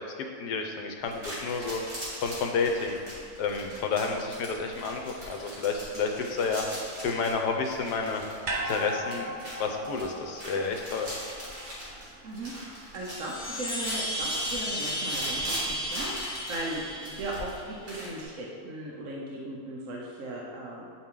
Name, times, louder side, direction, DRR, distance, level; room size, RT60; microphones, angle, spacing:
voice 1, 0.0-1.8 2.2-3.0 3.4-6.6 7.0-8.2 8.6-11.1, left 4 dB, 75° left, 3 dB, 1.3 m, -30 dB
sound 1, 1.0-18.2, equal, 35° right, 2.1 m, -41 dB
sound 2, 8.4-12.8 13.1-13.2, right 1 dB, 80° right, 0.4 m, -38 dB
voice 2, 12.2-20.9, right 1 dB, 55° right, -3 dB, 1.1 m, -37 dB
Chime, 13.0-17.7, equal, 60° left, 1.4 m, -34 dB
8.7 x 4.5 x 3.7 m, 2.2 s
omnidirectional pair, 1.8 m